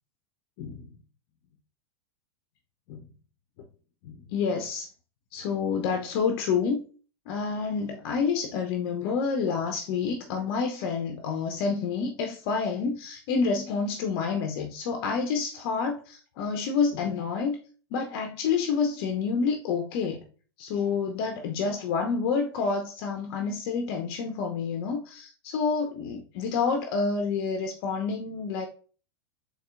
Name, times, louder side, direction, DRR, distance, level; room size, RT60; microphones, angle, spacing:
voice 1, 0.6-0.9 2.9-3.0 4.1-4.9 5.3-6.8 7.3-17.6 17.9-20.2 20.6-28.7, left 5 dB, 50° left, 0.6 m, -28 dB
4.2 x 3.2 x 2.4 m
hypercardioid pair, 95°, 14 cm